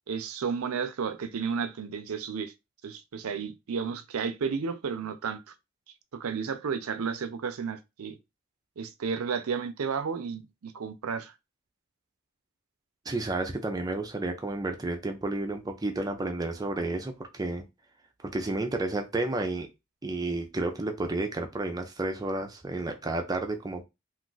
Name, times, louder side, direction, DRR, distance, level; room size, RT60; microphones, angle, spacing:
voice 1, 0.1-2.5 2.8-5.4 6.1-8.2 8.8-11.3, right 6 dB, 80° right, 0.5 m, -32 dB
voice 2, 13.1-17.7 18.2-19.7 20.0-23.8, right 2 dB, 15° right, 0.4 m, -31 dB
2.5 x 2.4 x 3.9 m
head